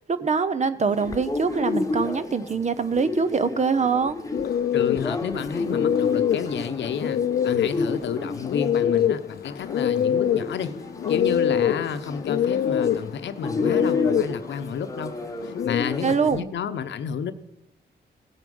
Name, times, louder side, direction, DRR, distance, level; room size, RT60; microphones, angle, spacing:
voice 1, 0.1-4.2 16.0-16.4, right 5 dB, 40° right, 13 dB, 0.8 m, -24 dB
sound 1, 0.9-16.4, left 3 dB, 15° left, 1.0 m, -32 dB
sound 2, 4.3-15.8, left 9 dB, 60° left, 0.4 m, -25 dB
voice 2, 4.7-10.8 11.1-15.1 15.4-17.3, left 7 dB, 85° left, 10 dB, 0.9 m, -31 dB
17.0 x 8.1 x 5.5 m, 0.88 s
cardioid pair, 100°, 18 cm